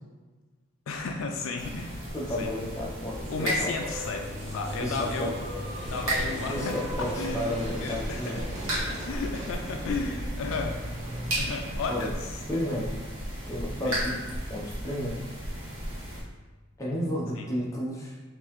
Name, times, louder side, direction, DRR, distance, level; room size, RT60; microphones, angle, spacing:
voice 1, 0.9-2.5 3.3-5.4 5.9-6.9 7.2-8.5 8.9-10.9 11.4-12.4 13.8-14.0 17.4-17.5, left 4 dB, 65° left, 3 dB, 0.3 m, -34 dB
sound 1, 0.9-12.1, equal, 30° right, 0.7 m, -38 dB
sound 2, 1.6-16.2, right 1 dB, 70° right, 1.4 m, -35 dB
voice 2, 2.1-3.7 4.8-5.3 6.5-8.4 11.9-12.1 12.5-13.0 13.5-14.2 14.5-15.2 16.8-18.2, left 1 dB, 15° left, -4 dB, 0.6 m, -32 dB
3.7 x 2.7 x 3.0 m, 1.3 s
head